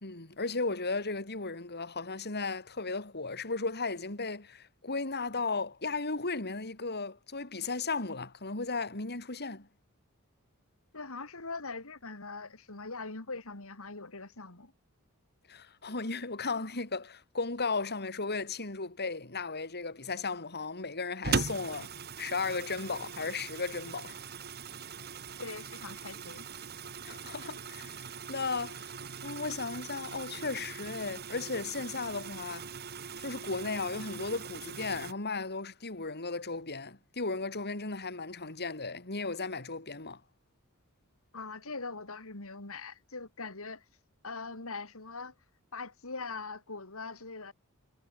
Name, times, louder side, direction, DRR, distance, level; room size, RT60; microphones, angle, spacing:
voice 1, 0.0-9.7 15.5-21.9 22.2-24.2 27.0-28.9 29.2-32.7 33.2-40.2, left 3 dB, 50° left, 4.2 m, -35 dB
voice 2, 10.9-14.7 25.4-26.5 41.3-43.8 44.2-45.3 45.7-47.5, left 3 dB, 70° left, 3.3 m, -42 dB
sound 1, 21.2-35.1, right 5 dB, 50° right, 1.4 m, -40 dB
head